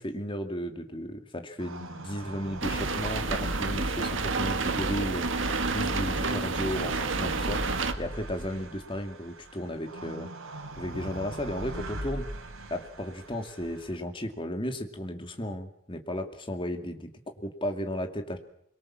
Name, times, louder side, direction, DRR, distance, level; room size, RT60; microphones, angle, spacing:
voice 1, 0.0-7.6 8.0-10.3 10.8-12.3 12.7-18.4, equal, 25° left, 5 dB, 2.5 m, -34 dB
sound 1, 1.6-14.0, right 1 dB, 90° right, 4.2 m, -40 dB
sound 2, 2.6-7.9, right 3 dB, 60° right, 1.8 m, -29 dB
24.5 x 23.0 x 7.5 m, 0.68 s
head